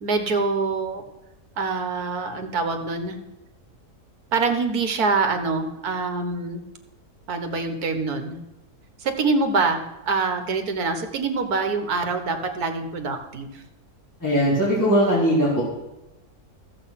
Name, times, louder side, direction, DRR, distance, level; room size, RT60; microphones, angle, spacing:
voice 1, 0.0-1.0 1.6-3.2 4.3-6.7 7.3-8.4 9.0-13.6, right 4 dB, 75° right, 6 dB, 1.8 m, -25 dB
voice 2, 14.2-15.6, equal, 10° left, -7 dB, 3.6 m, -19 dB
14.0 x 7.8 x 5.8 m, 1.0 s
omnidirectional pair, 1.6 m